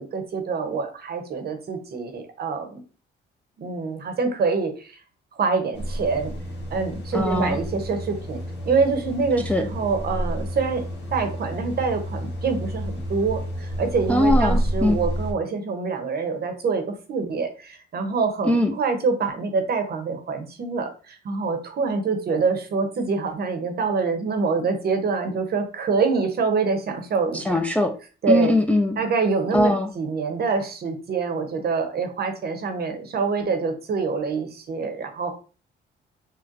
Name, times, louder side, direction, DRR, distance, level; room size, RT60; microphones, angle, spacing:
voice 1, 0.0-2.8 3.6-4.9 5.4-6.3 6.7-8.4 8.7-27.6 28.2-28.5 29.0-35.3, right 4 dB, 50° right, 6 dB, 0.8 m, -25 dB
sound 1, 5.7-15.3, equal, 60° left, 1.3 m, -30 dB
voice 2, 7.1-7.6 9.5-9.6 14.1-15.0 18.4-18.7 27.3-27.9 28.3-29.0 29.5-29.9, left 1 dB, 5° left, 3 dB, 0.3 m, -21 dB
3.9 x 2.1 x 2.5 m, 0.36 s
cardioid pair, 90°, 20 cm